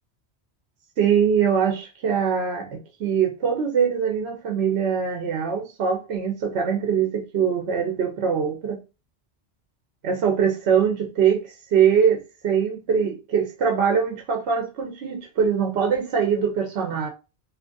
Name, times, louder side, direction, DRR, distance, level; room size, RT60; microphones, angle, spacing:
voice 1, 1.0-8.8 10.0-17.1, right 7 dB, 75° right, 0.9 m, -23 dB
2.8 x 2.5 x 3.7 m
omnidirectional pair, 1.1 m